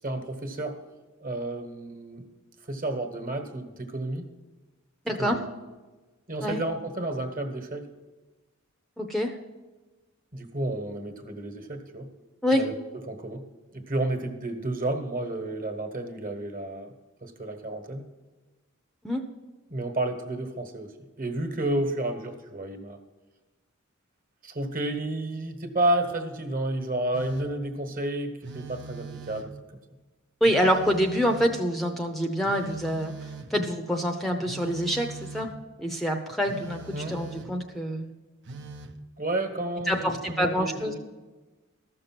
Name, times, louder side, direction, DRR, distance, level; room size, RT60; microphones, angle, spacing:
voice 1, 0.0-0.8 1.2-2.2 2.7-4.3 5.2-5.4 6.3-7.9 10.3-12.1 12.5-12.7 13.1-13.4 13.7-16.9 17.2-18.0 19.7-23.0 24.4-29.5 36.9-37.2 39.2-41.0, right 1 dB, 40° right, 5 dB, 1.3 m, -31 dB
voice 2, 5.1-5.4 6.4-6.6 9.0-9.3 12.4-12.6 19.0-19.2 30.4-33.1 33.5-35.5 35.8-38.1 39.9-40.9, equal, ahead, 4 dB, 0.7 m, -26 dB
Telephone, 27.1-27.7 28.4-29.7 30.4-31.7 32.4-33.7 34.4-35.6 36.5-37.7 38.5-39.0, right 3 dB, 60° right, 0.8 m, -41 dB
13.5 x 6.6 x 6.0 m, 1.2 s
head